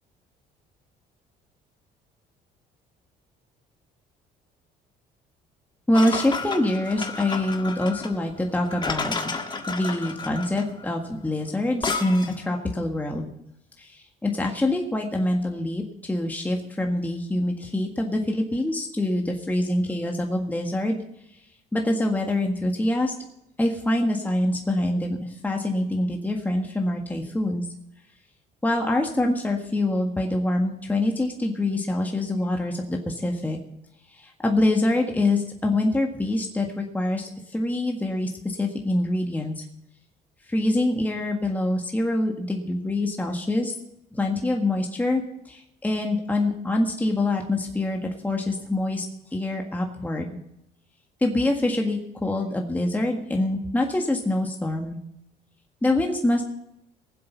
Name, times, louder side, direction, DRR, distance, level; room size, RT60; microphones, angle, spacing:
sound 1, 5.9-12.5, left 4 dB, 25° left, 1.6 m, -32 dB
voice 1, 5.9-13.3 13.8-21.0 21.7-23.1 23.6-27.7 28.6-33.6 34.1-39.6 40.5-43.7 44.1-49.0 49.3-50.4 51.2-55.0 55.8-56.4, left 1 dB, 10° left, 1 dB, 1.7 m, -25 dB
20.0 x 7.8 x 5.7 m, 0.80 s
cardioid pair, 110°, 17 cm